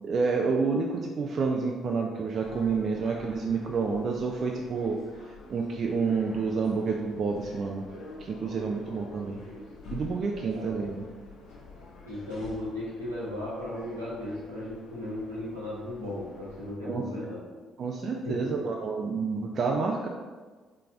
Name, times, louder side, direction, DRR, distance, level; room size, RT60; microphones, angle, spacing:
voice 1, 0.0-5.0 5.5-7.8 8.2-9.4 9.9-11.0 16.8-17.0 17.8-20.1, right 4 dB, 45° right, 1 dB, 0.4 m, -29 dB
sound 1, 2.4-16.7, left 2 dB, 65° left, 1.2 m, -48 dB
voice 2, 12.0-17.4 18.2-18.7, left 1 dB, 85° right, -10 dB, 1.4 m, -36 dB
4.1 x 3.3 x 3.5 m, 1.4 s
figure-of-eight pair, 45°, 0 cm